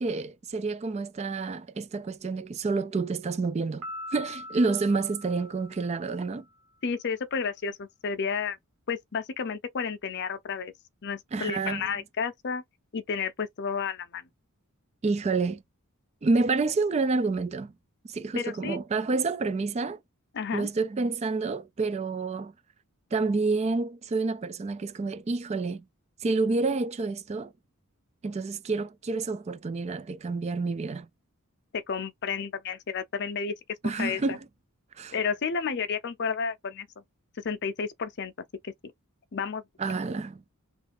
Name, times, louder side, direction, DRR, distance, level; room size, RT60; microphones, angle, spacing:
voice 1, 0.0-3.8 4.1-6.4 11.3-11.9 15.0-15.6 16.2-17.7 18.1-20.0 20.5-22.5 23.1-25.8 26.2-27.5 28.2-31.1 33.8-34.4 35.0-35.1 39.8-40.4, right 3 dB, 30° right, 0.3 m, -28 dB
Piano, 3.8-6.4, left 1 dB, 90° right, 1.4 m, -42 dB
voice 2, 6.8-8.6 8.9-10.7 11.0-12.6 12.9-14.3 18.3-18.8 20.3-20.7 31.7-33.5 34.0-34.4 35.1-36.9 37.4-38.3 38.6-38.9 39.3-39.6, left 5 dB, 50° left, 0.5 m, -31 dB
3.2 x 2.5 x 4.1 m
head